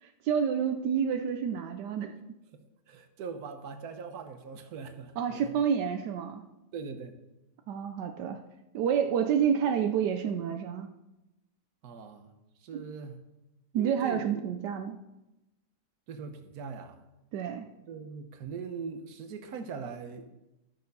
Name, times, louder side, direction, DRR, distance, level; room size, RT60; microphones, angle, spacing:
voice 1, 0.0-2.1 5.2-6.4 7.7-8.4 8.7-10.9 12.7-12.8 13.7-15.0 17.3-17.7, right 8 dB, 85° right, 6 dB, 1.3 m, -29 dB
voice 2, 2.5-5.5 6.7-7.2 11.8-12.3 12.6-13.2 13.8-14.4 16.1-17.0 17.8-20.3, right 5 dB, 65° right, 7 dB, 1.5 m, -41 dB
12.5 x 6.7 x 5.4 m, 0.96 s
omnidirectional pair, 1.8 m